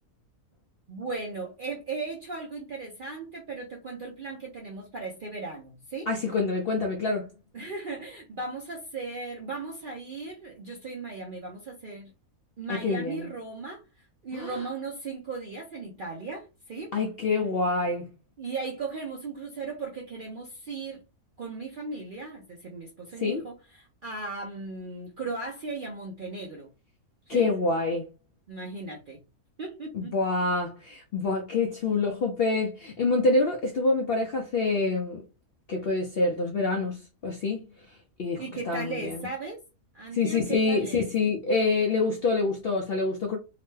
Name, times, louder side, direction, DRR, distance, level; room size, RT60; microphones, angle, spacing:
voice 1, 0.9-6.1 7.5-12.1 12.6-16.9 18.4-21.0 21.4-26.7 27.3-27.5 28.5-29.2 29.6-30.1 38.4-39.6 39.9-41.1, right 3 dB, 60° right, 0.5 m, -37 dB
voice 2, 6.1-7.3 12.7-13.3 14.3-14.5 16.9-18.1 23.2-23.4 27.3-28.1 29.9-35.2 35.7-37.6 38.2-39.3 40.1-43.4, left 3 dB, 65° left, 0.6 m, -26 dB
2.9 x 2.1 x 3.1 m
omnidirectional pair, 1.6 m